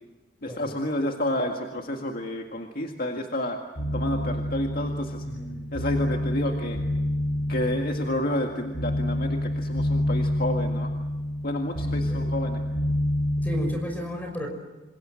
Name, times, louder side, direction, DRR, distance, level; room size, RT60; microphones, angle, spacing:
voice 1, 0.4-3.6 3.9-5.2 5.7-6.8 7.5-10.9 11.4-12.6, left 1 dB, 50° left, 2 dB, 2.0 m, -30 dB
sound 1, 3.8-13.7, left 1 dB, 75° left, 8.0 m, -28 dB
voice 2, 5.3-5.6 12.1-12.3 13.4-14.5, equal, 10° left, 4 dB, 5.6 m, -33 dB
27.0 x 27.0 x 7.7 m, 1.1 s
head